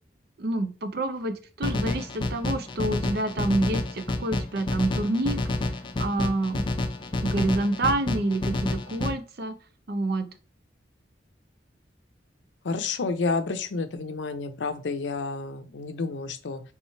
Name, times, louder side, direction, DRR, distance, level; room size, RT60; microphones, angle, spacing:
voice 1, 0.4-5.4 6.0-6.6 7.2-9.6 9.9-10.3, right 2 dB, 60° right, 9 dB, 0.6 m, -28 dB
sound 1, 1.6-9.1, left 2 dB, 25° left, 0.5 m, -29 dB
voice 2, 12.6-16.6, left 4 dB, 85° left, 11 dB, 0.6 m, -30 dB
3.4 x 3.1 x 4.3 m, 0.36 s
head